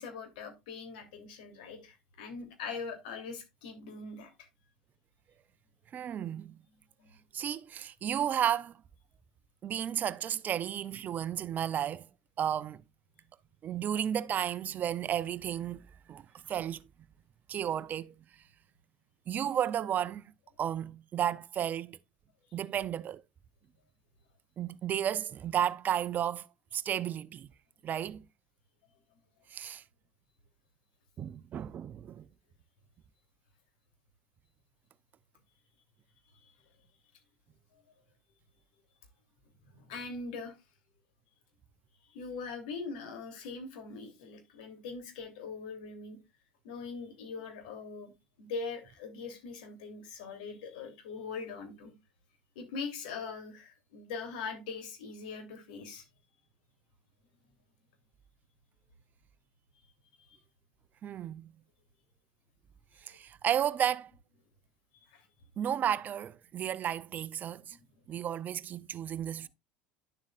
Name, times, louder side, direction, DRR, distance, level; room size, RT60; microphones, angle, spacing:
voice 1, 0.0-4.3 6.0-6.1 7.0-7.2 36.4-36.5 37.7-37.8 39.7-40.5 42.1-46.2 46.6-48.1 48.4-51.9 52.5-56.0 60.2-60.4 63.0-63.2 65.1-65.3 67.7-67.8 69.1-69.2, left 4 dB, 75° left, 3.1 m, -42 dB
voice 2, 5.9-6.6 7.3-8.8 9.6-12.1 12.4-12.8 13.6-15.8 16.1-16.9 17.5-18.1 19.3-20.2 20.6-22.0 22.5-23.2 24.6-26.5 26.7-27.5 27.8-28.2 29.5-29.8 31.2-32.2 61.0-61.5 63.0-64.1 65.6-67.8 68.1-69.5, right 10 dB, 40° right, 0.5 m, -33 dB
11.0 x 7.3 x 2.5 m
hypercardioid pair, 80°, 5 cm